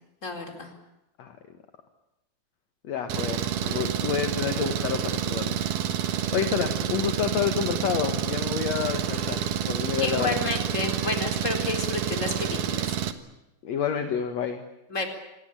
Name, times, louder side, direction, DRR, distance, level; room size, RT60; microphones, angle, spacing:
voice 1, 0.2-0.7 10.0-12.9 14.9-15.1, left 3 dB, 20° left, 4 dB, 4.3 m, -30 dB
voice 2, 2.8-10.4 13.6-14.6, left 8 dB, 60° left, 7 dB, 2.5 m, -29 dB
Engine, 3.1-13.1, right 8 dB, 75° right, 3.0 m, -28 dB
27.0 x 21.0 x 8.9 m, 0.91 s
omnidirectional pair, 3.8 m